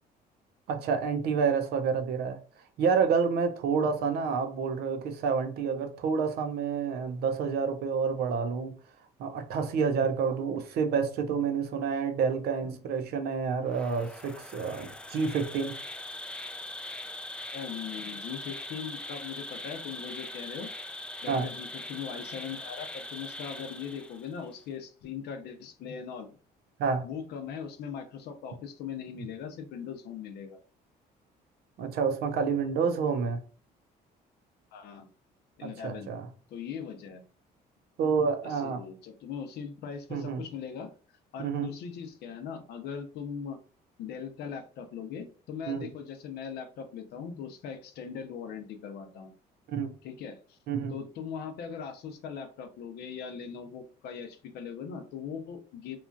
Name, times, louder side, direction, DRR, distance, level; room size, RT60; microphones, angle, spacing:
voice 1, 0.7-2.4 2.8-8.7 9.2-15.8 21.3-21.5 26.8-27.0 31.8-33.4 35.6-36.3 38.0-38.8 40.1-40.4 41.4-41.7 45.7-45.9 49.7-49.9 50.7-50.9, right 5 dB, 70° right, 0.6 m, -28 dB
Insect, 13.7-24.4, left 1 dB, 5° left, 0.3 m, -41 dB
voice 2, 17.5-20.7 21.2-26.3 27.0-30.6 34.7-35.1 35.6-36.1 36.5-37.2 38.5-40.9 41.3-43.6 44.0-49.3 50.0-50.6 50.9-56.0, left 7 dB, 75° left, 0.6 m, -40 dB
2.9 x 2.4 x 2.5 m
cardioid pair, 110°, 17 cm